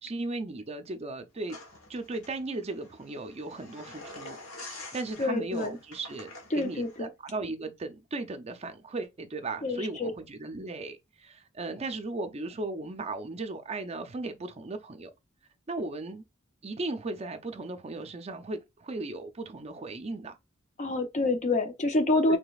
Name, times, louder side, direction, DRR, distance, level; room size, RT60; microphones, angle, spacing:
voice 1, 0.0-1.6 1.9-4.4 4.6-15.1 15.7-16.2 16.6-20.4 22.3-22.4, right 2 dB, 30° right, 0.5 m, -36 dB
sound 1, 1.5-7.0, left 2 dB, 80° left, 1.2 m, -47 dB
voice 2, 5.2-5.8 6.5-7.1 9.6-10.1 20.8-22.4, left 2 dB, 35° left, 0.6 m, -27 dB
4.9 x 3.3 x 2.3 m
head